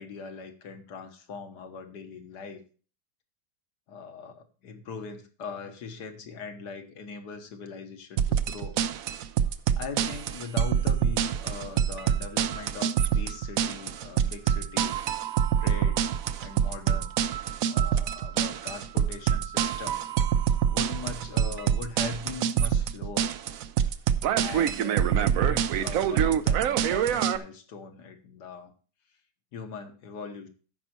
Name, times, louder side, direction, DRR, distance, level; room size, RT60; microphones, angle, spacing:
voice 1, 0.0-2.6 3.9-8.8 9.7-16.1 16.4-17.4 17.7-20.0 20.4-23.4 24.3-28.7 29.5-30.5, left 5 dB, 70° left, 7 dB, 1.9 m, -41 dB
sound 1, 8.2-27.4, right 9 dB, 65° right, 0.9 m, -26 dB
14.5 x 5.6 x 4.4 m, 0.38 s
omnidirectional pair, 1.9 m